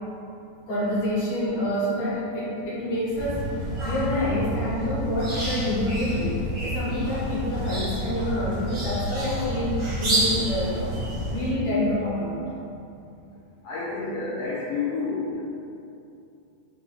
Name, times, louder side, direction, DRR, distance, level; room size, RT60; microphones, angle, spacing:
voice 1, 0.7-10.9 11.3-12.4, left 1 dB, 75° left, -8 dB, 2.0 m, -27 dB
sound 1, 3.1-11.5, right 1 dB, 55° right, 1.2 m, -29 dB
voice 2, 13.6-15.4, left 4 dB, 90° left, -9 dB, 1.4 m, -30 dB
4.7 x 2.4 x 3.0 m, 2.7 s
omnidirectional pair, 3.5 m